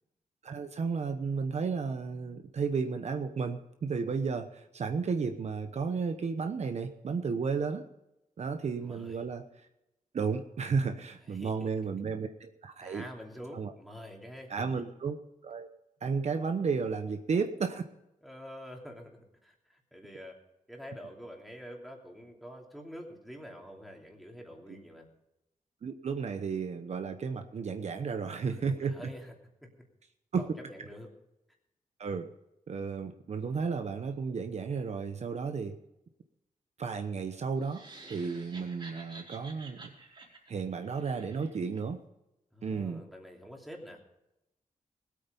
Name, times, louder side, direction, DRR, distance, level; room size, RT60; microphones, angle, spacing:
voice 1, 0.4-7.8 8.4-9.4 10.1-13.0 13.5-13.7 14.5-15.2 15.4-15.7 16.0-17.8 25.8-28.9 30.3-30.5 32.0-32.3 32.7-35.8 36.8-39.9 40.5-42.0 42.6-43.0, right 5 dB, 55° right, 6 dB, 0.9 m, -33 dB
voice 2, 8.8-9.2 11.2-11.7 12.8-14.8 18.2-20.3 20.7-25.1 28.4-29.3 29.6-29.8 30.4-31.1 42.5-44.0, equal, ahead, 0 dB, 2.9 m, -47 dB
sound 1, 37.6-41.8, right 3 dB, 40° right, 3.7 m, -51 dB
20.0 x 8.6 x 5.4 m, 0.89 s
wide cardioid pair, 150°, 13 cm